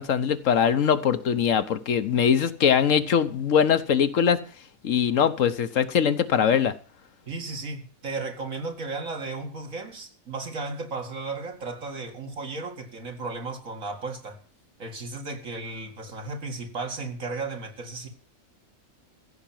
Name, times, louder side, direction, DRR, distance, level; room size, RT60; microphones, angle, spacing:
voice 1, 0.0-4.4 4.8-6.8, left 7 dB, 70° left, 1.3 m, -22 dB
voice 2, 7.3-14.4 14.8-18.1, right 3 dB, 70° right, 2.6 m, -34 dB
15.5 x 5.9 x 9.0 m
omnidirectional pair, 1.4 m